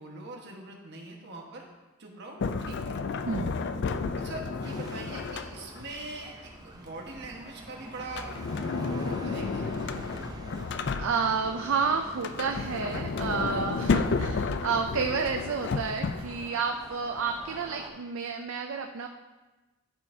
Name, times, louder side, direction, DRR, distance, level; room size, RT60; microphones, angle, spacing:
voice 1, 0.0-1.7 2.0-3.0 4.2-8.4 8.7-9.7, right 2 dB, 55° right, 0 dB, 1.4 m, -42 dB
Sliding door, 2.4-5.9 8.0-11.5 12.1-16.5, left 4 dB, 55° left, 0.4 m, -32 dB
sound 1, 4.6-17.9, right 1 dB, 20° right, 0.6 m, -45 dB
voice 2, 11.0-19.1, right 5 dB, 75° right, 5 dB, 0.5 m, -30 dB
12.5 x 5.6 x 2.7 m, 1.2 s
head